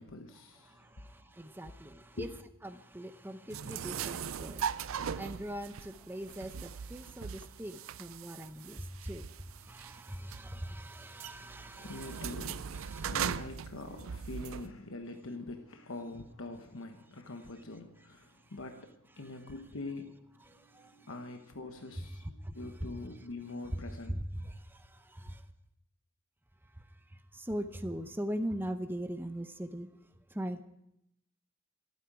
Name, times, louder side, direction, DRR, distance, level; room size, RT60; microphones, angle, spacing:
voice 1, 0.0-1.0 2.1-2.3 11.4-24.2, left 2 dB, 80° left, 1.1 m, -44 dB
voice 2, 0.7-2.3 2.6-12.3 12.7-13.1 20.5-21.1 22.0-22.1 22.4-22.5 22.8-22.9 23.7-23.8 24.1-25.4 26.7-29.9 30.3-30.6, equal, 10° right, 0.8 m, -41 dB
sound 1, 3.5-14.7, right 7 dB, 85° right, 0.5 m, -40 dB
28.0 x 9.5 x 4.9 m
head